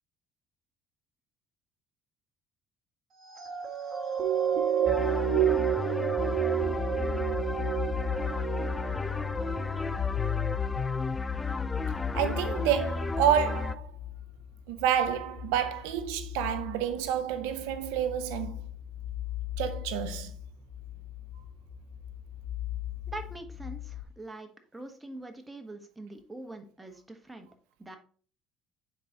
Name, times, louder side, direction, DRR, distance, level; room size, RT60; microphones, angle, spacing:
sound 1, 3.3-9.9 10.5-10.7, right 10 dB, 50° right, 1.3 m, -30 dB
sound 2, 4.9-13.7, left 4 dB, 15° left, 0.4 m, -32 dB
sound 3, 6.6-24.0, left 12 dB, 80° left, 3.4 m, -39 dB
voice 1, 12.1-13.9 14.7-18.6 19.6-20.3, right 9 dB, 90° right, 0.6 m, -29 dB
voice 2, 23.1-27.5 27.8-28.0, right 2 dB, 10° right, 1.2 m, -43 dB
9.2 x 4.0 x 2.9 m
supercardioid pair, 90°, 0 cm